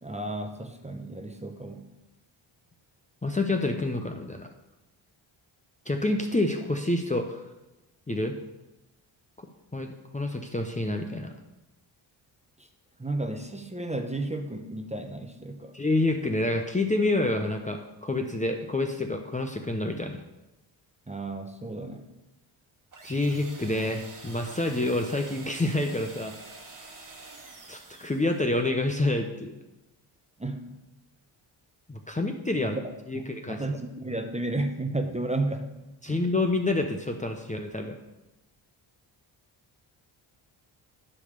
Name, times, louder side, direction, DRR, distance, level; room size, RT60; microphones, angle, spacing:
voice 1, 0.0-1.9 12.6-12.7 13.0-15.7 21.1-22.1 30.4-30.8 32.6-32.8 33.1-35.7 36.1-36.2, right 2 dB, 15° right, 5 dB, 1.0 m, -33 dB
voice 2, 3.2-4.5 5.9-7.4 8.1-8.4 9.7-11.3 15.7-20.2 23.0-26.3 27.7-29.5 31.9-32.8 33.1-33.6 36.0-38.0, left 2 dB, 15° left, 3 dB, 0.8 m, -28 dB
sound 1, 22.9-28.5, right 3 dB, 40° right, 1.5 m, -47 dB
9.8 x 3.4 x 6.7 m, 0.98 s
supercardioid pair, 55°, 50 cm